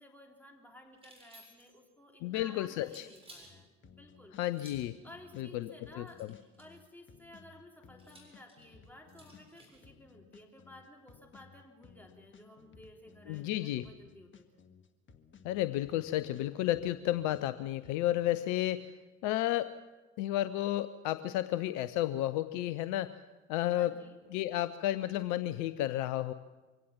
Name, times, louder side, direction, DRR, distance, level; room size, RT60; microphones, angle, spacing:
voice 1, 0.0-4.4 5.0-6.3 6.6-14.6 23.8-24.2, left 1 dB, 5° left, 2 dB, 3.5 m, -55 dB
sound 1, 0.9-1.8 2.8-3.5 4.5-5.0 6.0-6.8 8.0-9.8, right 1 dB, 15° right, 7.3 m, -57 dB
voice 2, 2.2-3.1 4.4-5.0 5.4-6.3 13.3-13.9 15.4-18.9 19.2-19.7 20.2-23.1 23.5-23.9 24.3-26.3, left 14 dB, 50° left, 15 dB, 0.7 m, -32 dB
sound 2, 3.4-5.5 5.8-9.5 9.8-13.5 13.8-17.5 17.8-18.7, left 6 dB, 30° left, 1.8 m, -59 dB
24.0 x 17.0 x 7.3 m, 1.2 s
figure-of-eight pair, 60°, 39 cm